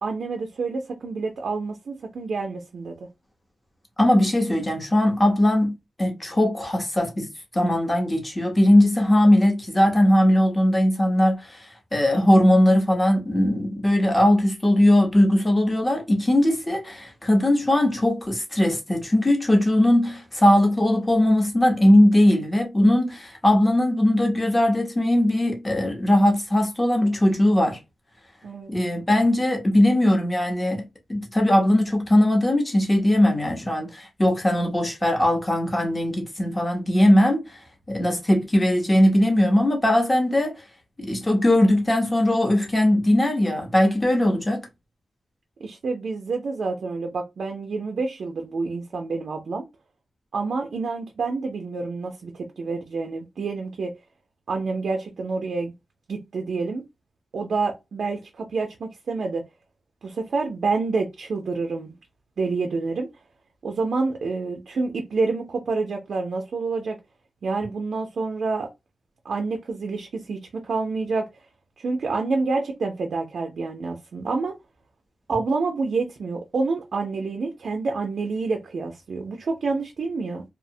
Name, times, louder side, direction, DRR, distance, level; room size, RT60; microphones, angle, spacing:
voice 1, 0.0-3.0 28.4-28.7 45.6-49.6 50.3-53.9 54.5-55.7 56.1-56.8 57.3-59.4 60.0-61.9 62.4-63.1 63.6-67.0 67.4-68.7 69.2-71.4 71.8-74.5 75.3-80.4, right 4 dB, 60° right, 0.4 m, -28 dB
voice 2, 4.0-5.7 6.0-7.3 7.5-27.8 28.7-30.8 31.1-37.6 37.9-40.5 41.0-44.6, left 1 dB, 15° left, 0.6 m, -19 dB
2.7 x 2.0 x 2.6 m
wide cardioid pair, 180°, 0 cm